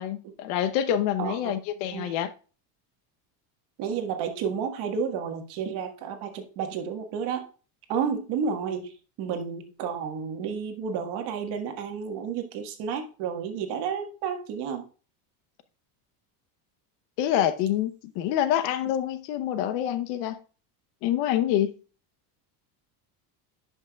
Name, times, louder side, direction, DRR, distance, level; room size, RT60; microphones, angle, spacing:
voice 1, 0.0-2.3 17.2-20.4 21.0-21.7, left 11 dB, 80° left, 0.9 m, -26 dB
voice 2, 1.2-1.6 1.9-2.1 3.8-7.5 7.9-14.9, right 6 dB, 60° right, 1.6 m, -31 dB
11.0 x 5.7 x 2.3 m
cardioid pair, 160°, 46 cm